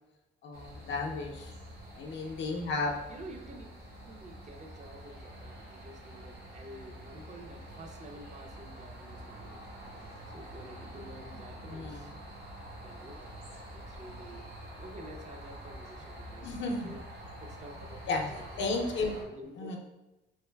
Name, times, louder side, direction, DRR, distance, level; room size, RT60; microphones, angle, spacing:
voice 1, 0.4-1.5 1.9-2.9 11.7-12.1 13.5-13.7 16.4-17.0 18.1-18.3 18.6-19.2 19.6-19.8, left 3 dB, 70° left, 1 dB, 0.5 m, -33 dB
sound 1, 0.5-19.2, right 1 dB, 55° right, 1.2 m, -47 dB
voice 2, 3.1-3.6 4.0-9.6 10.3-12.1 12.8-13.3 13.7-17.0 17.4-18.0 18.3-18.7 19.2-19.8, right 1 dB, 35° right, 4 dB, 0.5 m, -49 dB
3.4 x 3.0 x 2.2 m, 1.0 s
cardioid pair, 90°, 20 cm